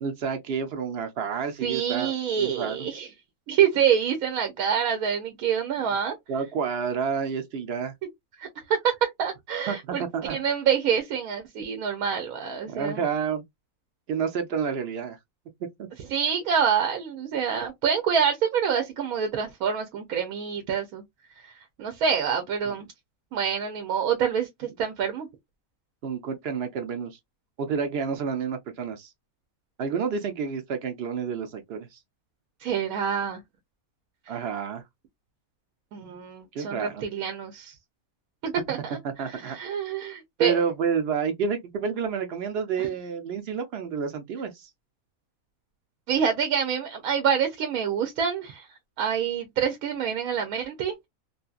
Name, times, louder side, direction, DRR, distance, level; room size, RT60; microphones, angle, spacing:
voice 1, 0.0-2.9 6.3-7.9 9.7-10.4 12.7-13.4 14.1-15.2 15.8-15.9 26.0-27.2 27.6-29.1 29.8-32.0 34.3-34.8 36.5-37.0 39.0-39.6 40.4-44.7, right 6 dB, 65° right, 0.6 m, -29 dB
voice 2, 1.6-3.1 3.5-6.2 8.4-10.0 10.3-13.0 16.1-21.0 21.4-21.5 21.8-22.9 23.3-25.3 32.6-33.4 35.9-37.7 38.4-39.0 39.3-40.6 42.8-42.9 46.1-48.7 49.0-51.1, right 7 dB, 85° right, 1.1 m, -26 dB
2.7 x 2.5 x 2.3 m
omnidirectional pair, 1.5 m